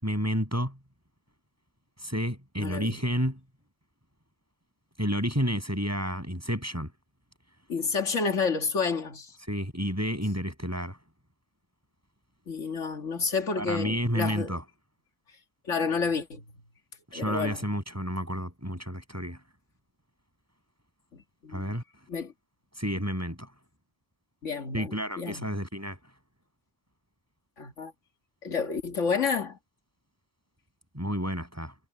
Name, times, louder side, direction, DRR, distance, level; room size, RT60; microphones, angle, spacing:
voice 1, 0.0-0.8 2.0-3.4 5.0-6.9 9.5-11.0 13.6-14.6 17.1-19.4 21.5-21.8 22.7-23.5 24.7-26.0 30.9-31.7, equal, 10° right, 7.8 m, -30 dB
voice 2, 2.6-3.0 7.7-9.4 12.5-14.5 15.7-16.4 17.1-17.6 21.1-21.7 22.1-22.3 24.4-25.5 27.6-27.9 28.4-29.6, left 5 dB, 85° left, 2.2 m, -30 dB
omnidirectional pair, 1.2 m